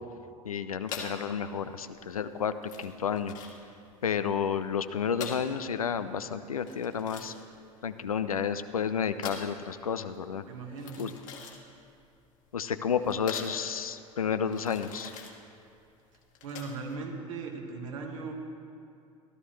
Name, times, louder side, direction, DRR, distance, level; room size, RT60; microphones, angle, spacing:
voice 1, 0.4-3.3 4.0-7.3 7.8-10.4 11.0-11.1 12.5-15.1, left 7 dB, 85° left, 11 dB, 0.5 m, -31 dB
sound 1, 0.8-17.0, left 5 dB, 45° left, 1.6 m, -45 dB
voice 2, 10.5-11.1 16.4-18.3, right 4 dB, 70° right, 2 dB, 1.5 m, -38 dB
16.0 x 12.5 x 3.2 m, 2.5 s
figure-of-eight pair, 75°, 18 cm